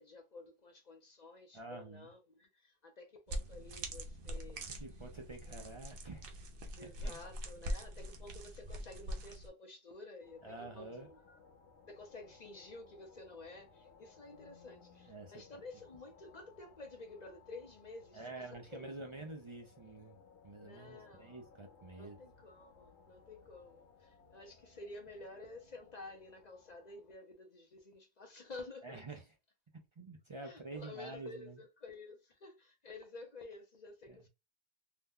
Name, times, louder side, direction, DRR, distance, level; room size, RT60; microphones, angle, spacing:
voice 1, 0.0-4.6 6.8-11.4 11.9-19.2 20.6-21.4 22.0-29.0 30.4-34.3, left 3 dB, 45° left, 0.7 m, -52 dB
voice 2, 1.5-2.1 4.7-6.3 7.0-7.2 10.4-11.1 15.1-15.3 18.1-20.2 20.4-22.2 28.8-29.2 30.0-31.6 34.1-34.2, right 2 dB, 40° right, 0.4 m, -48 dB
sound 1, 3.3-9.5, equal, 60° right, 0.8 m, -43 dB
sound 2, 10.2-27.1, left 5 dB, 90° left, 1.0 m, -62 dB
2.7 x 2.1 x 3.6 m
omnidirectional pair, 1.1 m